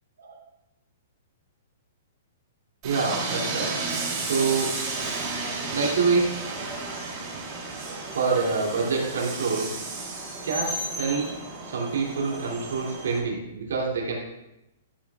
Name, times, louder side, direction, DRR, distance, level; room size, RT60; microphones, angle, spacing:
Train, 2.8-13.2, right 3 dB, 30° right, 3.0 m, -33 dB
voice 1, 2.8-3.8 4.2-4.8 5.7-6.5 8.1-9.8 10.4-14.2, right 4 dB, 90° right, -2 dB, 2.6 m, -26 dB
12.0 x 10.5 x 2.4 m, 0.91 s
hypercardioid pair, 160°, 0 cm